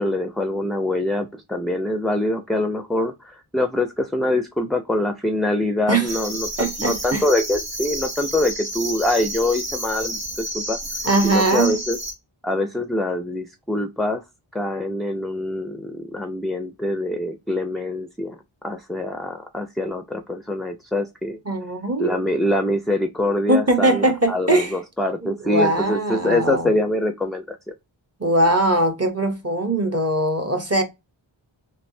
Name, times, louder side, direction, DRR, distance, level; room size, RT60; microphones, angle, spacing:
voice 1, 0.0-10.8 11.2-12.0 12.4-14.2 14.5-18.4 18.6-21.4 22.0-27.6, left 1 dB, ahead, 0.3 m, -24 dB
sound 1, 6.1-12.1, right 1 dB, 80° right, 1.8 m, -30 dB
voice 2, 6.6-7.2 11.0-11.8 21.5-22.2 23.5-24.8 25.2-26.7 28.2-30.8, right 2 dB, 30° right, 0.7 m, -21 dB
3.2 x 2.6 x 2.6 m
wide cardioid pair, 40°, 48 cm